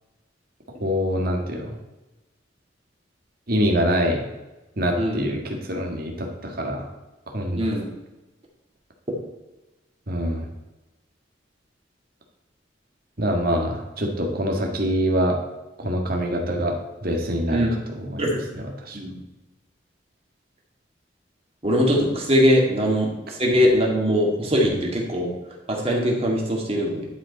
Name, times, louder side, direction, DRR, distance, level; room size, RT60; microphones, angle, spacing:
voice 1, 0.8-1.8 3.5-4.2 4.8-6.9 7.3-7.6 10.1-10.4 13.2-15.4 15.8-17.7 18.0-18.2 18.8-19.0, equal, 55° right, 1 dB, 1.7 m, -24 dB
voice 2, 5.0-5.3 7.6-7.9 17.5-17.7 18.2-18.4 18.9-19.1 21.6-25.3 25.7-27.1, equal, 35° right, -1 dB, 2.1 m, -21 dB
11.0 x 5.1 x 4.1 m, 1.1 s
head